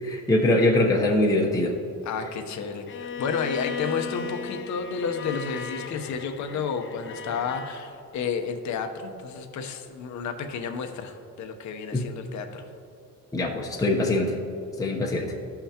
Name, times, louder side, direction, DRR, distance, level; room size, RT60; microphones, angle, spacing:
voice 1, 0.0-1.8 11.9-12.0 13.3-14.4 14.8-15.3, left 1 dB, 10° left, -1 dB, 0.8 m, -23 dB
voice 2, 2.0-12.7, left 5 dB, 55° left, 5 dB, 0.9 m, -31 dB
Bowed string instrument, 2.9-7.8, left 6 dB, 35° left, 0.5 m, -36 dB
13.5 x 5.8 x 2.8 m, 2.8 s
cardioid pair, 105°, 35 cm